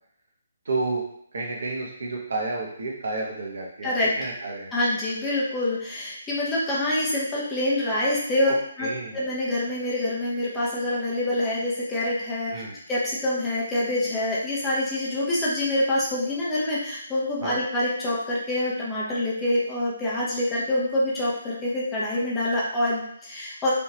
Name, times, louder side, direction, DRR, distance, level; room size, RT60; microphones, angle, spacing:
voice 1, 0.7-1.0 1.3-4.7 8.8-9.2 12.5-12.7 17.4-17.6, right 3 dB, 55° right, -2 dB, 0.9 m, -31 dB
voice 2, 4.7-8.9 9.1-12.6 12.9-23.7, left 1 dB, 10° left, -6 dB, 0.8 m, -26 dB
3.4 x 2.7 x 3.0 m, 0.69 s
figure-of-eight pair, 140°, 0 cm